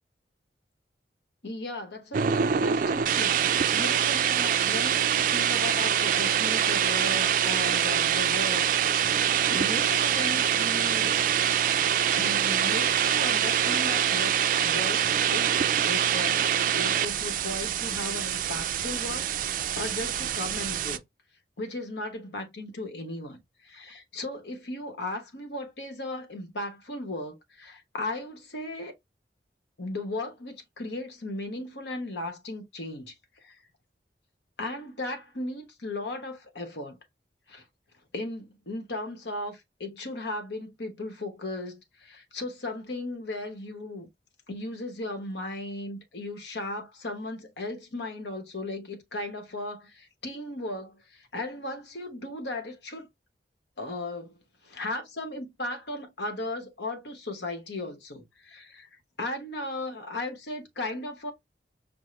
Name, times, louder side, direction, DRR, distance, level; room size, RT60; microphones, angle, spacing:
voice 1, 1.4-11.2 12.2-15.0 15.3-16.5 16.7-21.0 21.6-28.9 29.8-33.1 33.4-33.5 34.6-37.0 37.5-37.6 38.1-44.1 44.5-53.1 53.8-54.3 54.6-58.9 59.2-61.3, left 2 dB, 75° left, 1.1 m, -36 dB
sound 1, 2.1-21.0, right 9 dB, 45° right, 0.3 m, -25 dB
5.3 x 2.1 x 3.1 m
head